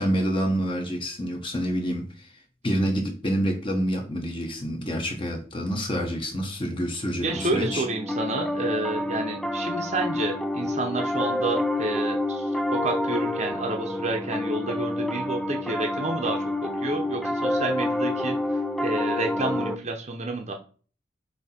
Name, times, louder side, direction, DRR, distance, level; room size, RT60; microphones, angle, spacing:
voice 1, 0.0-2.3 2.6-7.8, equal, 25° left, 0.9 m, -27 dB
voice 2, 7.2-20.5, right 2 dB, 35° right, 0.8 m, -30 dB
Piano, 7.3-19.7, left 1 dB, ahead, 0.3 m, -28 dB
7.8 x 2.8 x 4.3 m
head